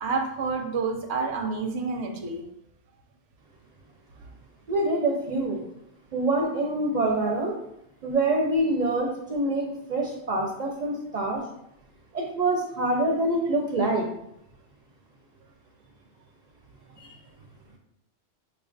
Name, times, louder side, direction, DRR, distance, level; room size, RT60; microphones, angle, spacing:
voice 1, 0.0-2.5 7.3-7.4, right 4 dB, 85° right, 3 dB, 0.9 m, -29 dB
voice 2, 4.7-5.6 6.1-7.5 8.0-11.4 12.1-14.1, right 2 dB, 55° right, -1 dB, 0.5 m, -25 dB
4.6 x 2.4 x 2.5 m, 0.80 s
omnidirectional pair, 1.1 m